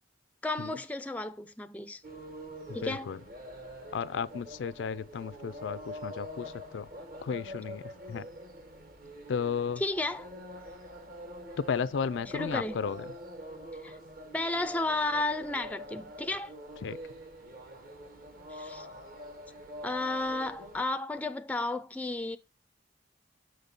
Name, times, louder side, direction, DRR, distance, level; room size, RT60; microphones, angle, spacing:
voice 1, 0.4-2.0 2.7-3.1 9.8-10.3 12.3-12.8 13.8-14.0 14.3-16.5 18.5-18.9 19.8-22.4, left 2 dB, 10° left, 0.3 m, -33 dB
sound 1, 2.0-20.8, equal, 50° right, 1.2 m, -45 dB
voice 2, 2.7-3.2 3.9-6.9 7.2-8.3 9.3-9.8 11.6-13.1 16.8-17.0, left 6 dB, 85° left, 0.4 m, -34 dB
6.4 x 5.1 x 4.0 m
head